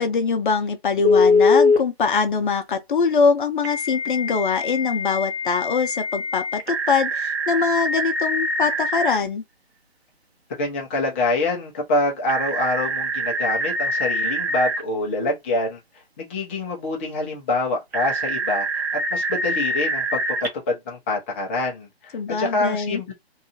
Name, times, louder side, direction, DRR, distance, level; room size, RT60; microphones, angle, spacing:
voice 1, 0.0-9.4 22.1-23.0, left 5 dB, 55° left, 0.6 m, -23 dB
Telephone, 1.0-1.8 3.6-9.2 12.3-14.8 17.9-20.5, left 2 dB, 90° right, 1.0 m, -23 dB
voice 2, 10.6-15.8 16.2-18.8 19.1-20.2 20.7-23.1, left 2 dB, 10° left, 0.4 m, -25 dB
2.7 x 2.3 x 2.7 m
figure-of-eight pair, 140°, 31 cm